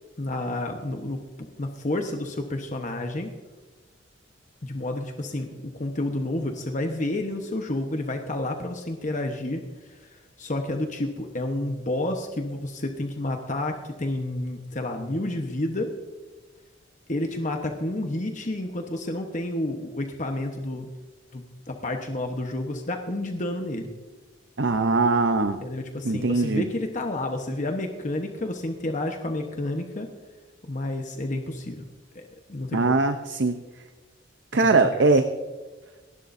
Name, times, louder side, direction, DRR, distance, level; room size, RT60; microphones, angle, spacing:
voice 1, 0.2-1.2 1.6-3.3 4.6-15.9 17.1-20.9 21.3-23.9 25.6-30.1 30.6-31.9 32.1-32.2 32.5-33.0 34.6-35.1, left 1 dB, 40° left, 4 dB, 1.1 m, -30 dB
voice 2, 24.6-25.6 26.0-26.7 32.7-33.6 34.5-35.3, right 3 dB, 65° right, 8 dB, 0.7 m, -21 dB
29.5 x 11.5 x 2.7 m, 1.3 s
head